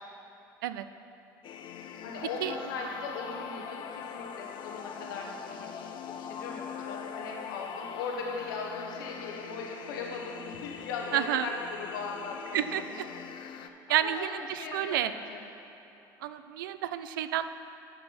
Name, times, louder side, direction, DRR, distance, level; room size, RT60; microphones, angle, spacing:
sound 1, 1.4-13.7, left 8 dB, 50° left, 0.5 m, -42 dB
voice 1, 2.0-15.4, left 4 dB, 80° left, 0 dB, 1.1 m, -39 dB
voice 2, 11.1-11.5 12.5-13.1 13.9-15.1 16.2-17.4, right 12 dB, 80° right, 12 dB, 0.4 m, -30 dB
10.0 x 4.4 x 6.0 m, 3.0 s
hypercardioid pair, 70°, 11 cm